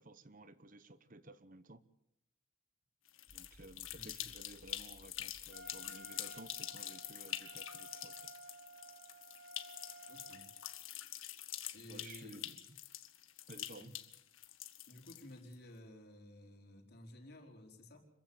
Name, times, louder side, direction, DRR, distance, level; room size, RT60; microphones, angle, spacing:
voice 1, 0.0-1.8 3.3-8.1 11.9-12.6 13.5-13.9, right 2 dB, 40° right, 13 dB, 1.0 m, -55 dB
sound 1, 3.1-15.5, left 13 dB, 70° left, 1.9 m, -46 dB
sound 2, 3.3-7.5, equal, 30° left, 5.4 m, -64 dB
voice 2, 3.9-4.2 10.1-10.5 11.7-12.5 13.8-13.9 14.9-18.1, left 1 dB, 50° left, 2 dB, 4.7 m, -54 dB
Wind instrument woodwind instrument, 5.5-10.8, right 2 dB, 60° right, 2.5 m, -55 dB
26.5 x 15.5 x 8.9 m, 0.78 s
head